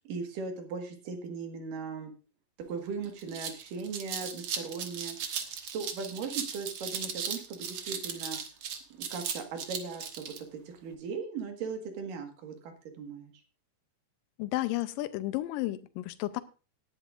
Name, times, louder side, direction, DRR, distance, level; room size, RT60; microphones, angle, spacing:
voice 1, 0.0-2.1 2.7-8.4 9.0-13.3, right 5 dB, 80° right, 5 dB, 3.3 m, -38 dB
sound 1, 2.6-2.7 3.0-10.4, right 7 dB, 55° right, 1.9 m, -37 dB
voice 2, 14.4-16.4, left 17 dB, 85° left, 12 dB, 2.4 m, -32 dB
18.5 x 9.8 x 2.5 m, 0.34 s
omnidirectional pair, 3.9 m